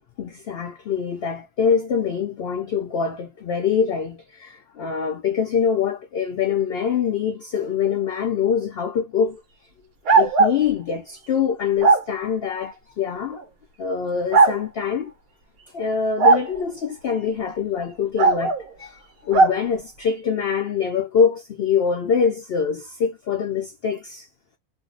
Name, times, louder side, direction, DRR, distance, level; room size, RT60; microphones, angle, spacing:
voice 1, 0.2-9.4 10.1-13.4 13.8-15.1 15.7-24.3, left 6 dB, 75° left, 0.5 m, -24 dB
sound 1, 10.1-10.6 11.8-12.0 13.3-13.4 14.3-14.6 16.2-16.5 18.2-18.6 19.3-19.6, right 4 dB, 80° right, 1.1 m, -16 dB
2.7 x 2.0 x 3.6 m
omnidirectional pair, 1.5 m